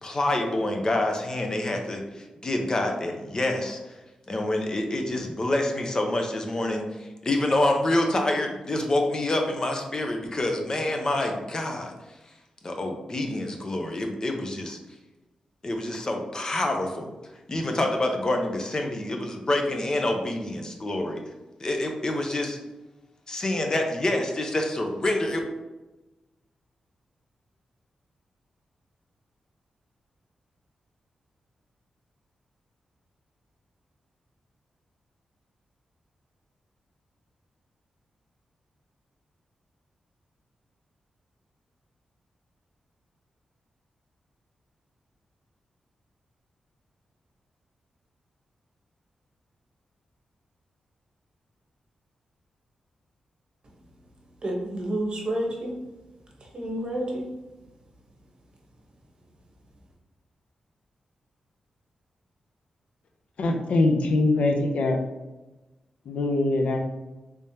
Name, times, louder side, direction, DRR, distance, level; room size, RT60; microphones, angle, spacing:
voice 1, 0.0-3.9 4.3-11.9 12.6-14.8 15.6-17.1 17.5-21.2 21.6-22.6 23.3-25.4, left 1 dB, 35° left, 3 dB, 0.6 m, -27 dB
voice 2, 54.4-55.8 56.4-57.4, right 1 dB, 45° right, -1 dB, 1.0 m, -30 dB
voice 3, 63.4-65.0 66.1-66.8, left 2 dB, 75° left, 4 dB, 0.5 m, -23 dB
3.4 x 3.3 x 2.8 m, 1.1 s
cardioid pair, 85°, 2 cm